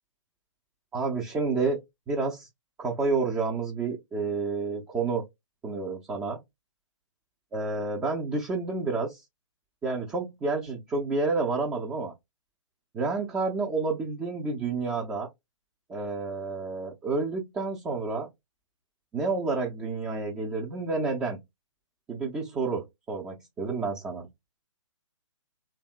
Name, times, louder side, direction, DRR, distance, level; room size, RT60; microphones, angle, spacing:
voice 1, 0.9-1.8 2.1-2.5 2.8-5.2 5.6-6.4 7.5-9.2 9.8-12.1 12.9-15.3 15.9-18.3 19.1-21.4 22.1-24.3, right 3 dB, 10° right, 0.3 m, -29 dB
2.7 x 2.2 x 2.2 m
figure-of-eight pair, 130°, 17 cm